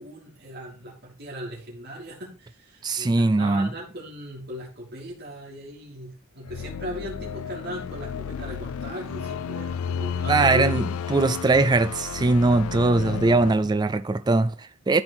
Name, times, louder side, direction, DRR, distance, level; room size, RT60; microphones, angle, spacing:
voice 1, 0.0-10.9 12.8-13.3, equal, 50° right, 2.9 m, -38 dB
voice 2, 2.8-3.7 10.3-15.0, right 3 dB, 20° right, 0.3 m, -21 dB
sound 1, 6.5-13.5, left 7 dB, 85° left, 0.4 m, -32 dB
12.0 x 4.5 x 4.3 m
head